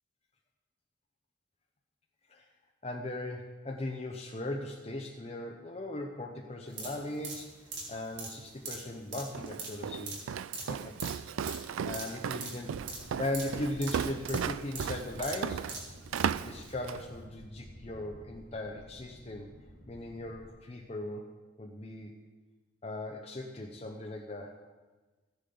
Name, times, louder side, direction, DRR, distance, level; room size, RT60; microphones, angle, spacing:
voice 1, 2.8-10.2 10.7-10.9 11.8-12.7 13.2-15.7 16.4-19.5 19.9-21.3 21.6-22.1 22.8-24.6, left 1 dB, 30° left, 2 dB, 0.7 m, -38 dB
sound 1, 6.7-16.3 16.6-16.7, right 3 dB, 60° right, 3.3 m, -43 dB
Walk footsteps, 9.3-17.1, right 7 dB, 80° right, 0.3 m, -36 dB
sound 2, 12.7-20.5, equal, 90° left, 3.0 m, -52 dB
14.0 x 9.9 x 3.9 m, 1.3 s
head